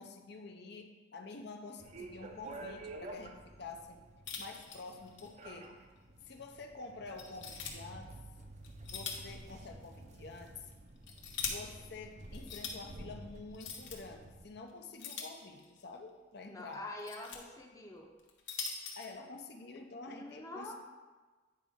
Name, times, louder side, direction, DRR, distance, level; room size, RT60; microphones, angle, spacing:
voice 1, 0.0-4.0 4.4-5.7 6.2-8.1 8.9-10.7 11.4-16.8 19.0-20.7, left 3 dB, 60° left, 4 dB, 0.6 m, -48 dB
sound 1, 1.8-14.5, right 2 dB, 40° right, 0.6 m, -51 dB
sound 2, 4.3-5.3 5.6-5.7 6.3-6.4 7.2-7.7 8.6-9.4 9.7-9.8 10.7-11.5 12.3-12.7 13.5-14.0 15.0-15.8 16.7-17.4 18.2-19.1, left 6 dB, 75° left, 1.1 m, -41 dB
voice 2, 16.4-18.1 20.1-20.7, left 2 dB, 20° left, 1 dB, 0.7 m, -45 dB
9.1 x 5.1 x 3.5 m, 1.3 s
head